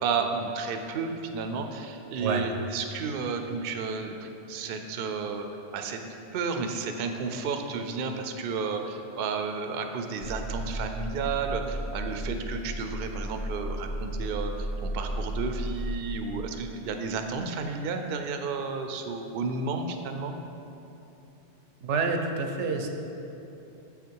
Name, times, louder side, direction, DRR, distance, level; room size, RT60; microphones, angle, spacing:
voice 1, 0.0-5.5 5.7-6.0 6.3-20.4, right 4 dB, 60° right, 5 dB, 0.7 m, -32 dB
sound 1, 10.2-15.9, right 1 dB, 35° left, 1.0 m, -34 dB
voice 2, 21.8-22.9, right 4 dB, 85° right, 4 dB, 1.0 m, -28 dB
7.1 x 5.7 x 4.6 m, 3.0 s
omnidirectional pair, 1.2 m